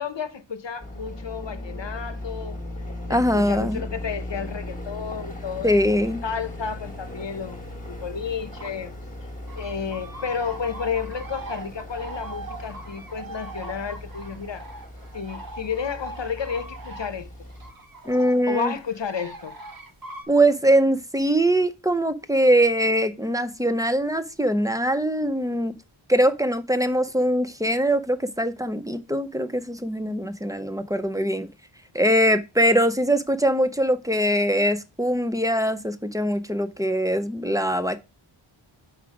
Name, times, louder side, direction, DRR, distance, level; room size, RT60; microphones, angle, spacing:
voice 1, 0.0-2.6 3.1-8.9 9.6-14.6 15.1-17.3 18.4-19.6, left 6 dB, 60° left, 0.9 m, -32 dB
sound 1, 0.8-17.7, left 1 dB, 15° left, 1.7 m, -38 dB
voice 2, 3.1-3.8 5.6-6.2 18.1-18.7 20.3-25.7 26.1-31.5 31.9-38.0, equal, 5° right, 0.6 m, -22 dB
sound 2, 6.9-7.4 7.8-8.8 9.1-9.2 9.5-20.3, right 2 dB, 45° right, 1.4 m, -41 dB
5.4 x 4.9 x 4.8 m
wide cardioid pair, 70°, 49 cm